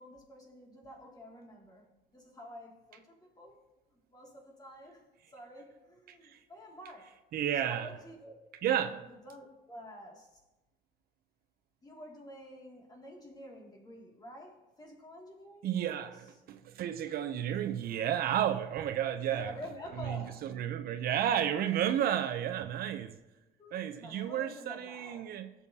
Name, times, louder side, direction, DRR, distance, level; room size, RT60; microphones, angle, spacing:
voice 1, 0.0-3.6 3.9-5.1 5.3-7.1 7.6-8.3 8.9-10.3 11.8-16.1 19.3-20.5 23.6-25.3, equal, 25° left, 2.4 m, -49 dB
voice 2, 6.1-6.4 7.3-7.9 8.6-9.1 15.6-19.5 20.0-23.2 23.7-25.5, right 10 dB, 65° right, 0.6 m, -32 dB
16.5 x 6.9 x 2.8 m
cardioid pair, 110°, 17 cm